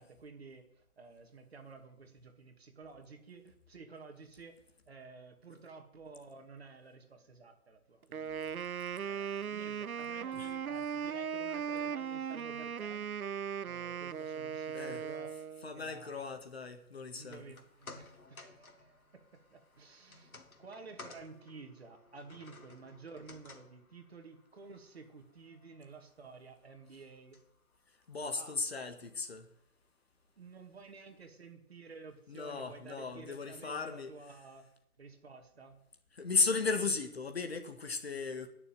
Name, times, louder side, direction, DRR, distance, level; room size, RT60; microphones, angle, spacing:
voice 1, 0.0-4.6 4.9-8.5 9.1-13.1 13.6-15.3 15.7-16.3 17.1-27.4 28.3-28.6 30.4-34.7 35.0-35.8, right 4 dB, 45° right, 2.3 m, -52 dB
Wind instrument woodwind instrument, 8.1-15.7, right 7 dB, 75° right, 0.7 m, -38 dB
voice 2, 14.7-15.0 15.6-17.4 28.1-29.5 32.3-34.1 36.1-38.5, left 4 dB, 45° left, 1.8 m, -35 dB
sound 1, 17.1-29.5 29.9-30.0, left 3 dB, 75° left, 3.0 m, -57 dB
18.5 x 7.0 x 9.3 m
figure-of-eight pair, 165°, 44 cm